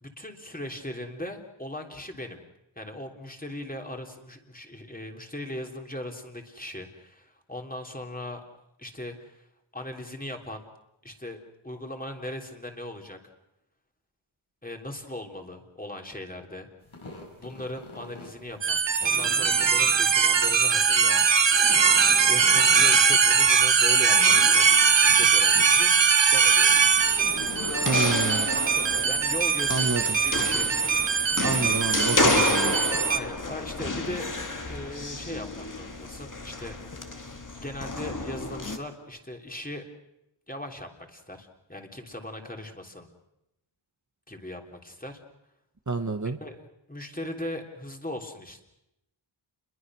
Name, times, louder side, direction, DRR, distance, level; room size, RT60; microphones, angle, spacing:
voice 1, 0.0-2.4 2.7-8.4 8.8-9.5 9.7-10.6 11.0-13.2 14.6-16.7 17.4-21.3 22.3-25.9 26.3-26.8 28.5-30.7 33.1-34.3 34.7-39.8 40.5-43.1 44.3-45.2 46.4-48.6, left 1 dB, 15° left, 3 dB, 3.3 m, -39 dB
sound 1, 16.8-28.0, left 2 dB, 70° left, 7.1 m, -44 dB
sound 2, 18.6-33.2, right 6 dB, 60° right, 1.2 m, -21 dB
sound 3, 26.7-38.8, left 2 dB, 40° left, 2.3 m, -31 dB
voice 2, 27.8-28.5 29.7-30.2 31.4-33.0 45.9-46.4, right 3 dB, 35° right, 6 dB, 1.5 m, -29 dB
29.5 x 22.0 x 6.3 m, 0.85 s
wide cardioid pair, 75°, 49 cm